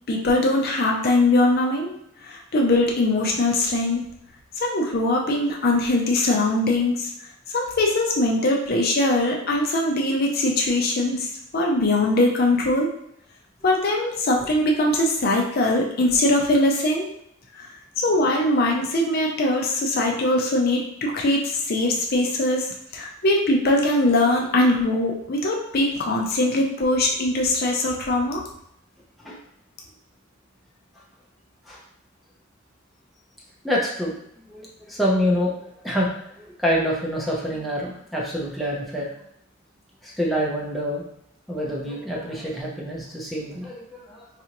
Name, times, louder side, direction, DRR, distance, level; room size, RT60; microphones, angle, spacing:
voice 1, 0.1-1.9 2.2-4.0 4.6-7.1 7.5-11.3 11.5-12.9 13.6-17.1 17.5-17.7 18.0-22.7 22.9-28.4, left 2 dB, 50° left, 0 dB, 0.5 m, -21 dB
voice 2, 33.6-34.1 34.5-39.1 40.0-41.0 41.5-44.3, equal, ahead, -4 dB, 0.6 m, -26 dB
4.1 x 2.5 x 2.9 m, 0.74 s
head